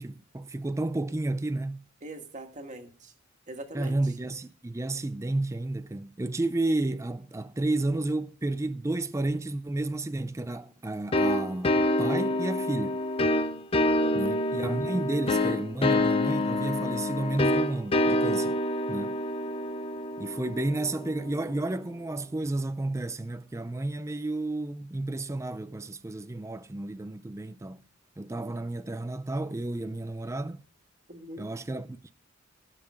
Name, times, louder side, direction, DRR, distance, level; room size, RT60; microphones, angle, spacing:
voice 1, 0.0-1.8 3.7-13.0 14.1-18.6 18.9-19.2 20.2-27.8 28.2-30.6 31.4-32.1, right 2 dB, 15° right, 0.4 m, -31 dB
voice 2, 2.0-3.1 3.5-4.0 13.8-14.2 31.1-31.5, right 1 dB, 40° right, 1.8 m, -42 dB
sound 1, 11.1-21.6, left 1 dB, 30° left, 0.6 m, -27 dB
16.0 x 5.8 x 4.9 m
head